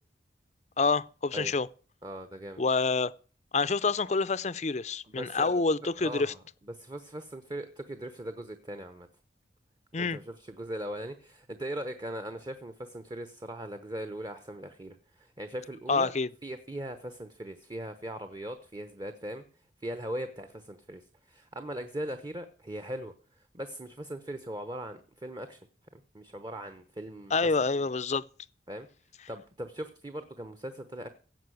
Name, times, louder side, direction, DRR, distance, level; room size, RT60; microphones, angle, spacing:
voice 1, 0.8-1.7 2.6-3.1 3.5-6.3 9.9-10.2 15.9-16.3 27.3-28.2, left 4 dB, 35° left, 0.5 m, -27 dB
voice 2, 2.0-2.6 5.0-5.6 6.0-9.1 10.0-16.1 16.4-19.4 19.8-27.5 28.7-28.9 29.3-31.1, right 1 dB, 20° right, 0.9 m, -40 dB
16.5 x 5.5 x 9.3 m
head